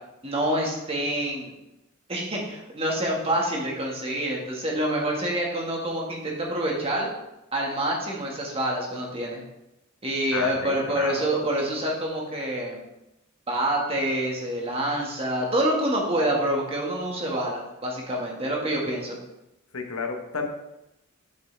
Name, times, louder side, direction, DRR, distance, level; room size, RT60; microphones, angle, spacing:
voice 1, 0.2-1.5 2.1-7.1 7.5-9.4 10.0-12.8 13.5-19.2, right 1 dB, 25° right, -2 dB, 1.6 m, -27 dB
voice 2, 10.3-11.2 19.7-20.5, left 4 dB, 85° left, 4 dB, 1.1 m, -32 dB
8.0 x 6.5 x 3.4 m, 0.91 s
head